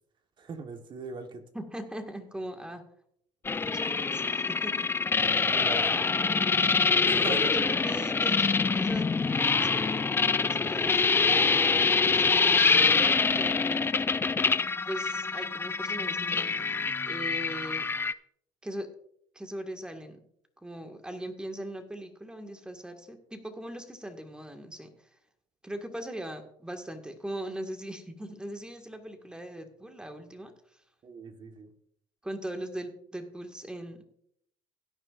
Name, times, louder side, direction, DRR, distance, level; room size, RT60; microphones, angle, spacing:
voice 1, 0.4-1.4 5.2-6.0 7.1-7.4 31.0-31.7, right 3 dB, 40° right, 6 dB, 1.4 m, -40 dB
voice 2, 1.5-2.8 3.7-4.9 7.3-9.1 9.6-11.6 12.0-13.9 14.8-16.6 17.0-17.9 18.6-18.9 19.3-20.2 20.6-24.9 25.6-30.5 32.2-34.0, right 1 dB, 5° right, 5 dB, 1.9 m, -40 dB
sound 1, 3.4-18.1, left 4 dB, 20° left, 0.4 m, -25 dB
16.5 x 9.9 x 2.6 m, 0.69 s
supercardioid pair, 95°, 12 cm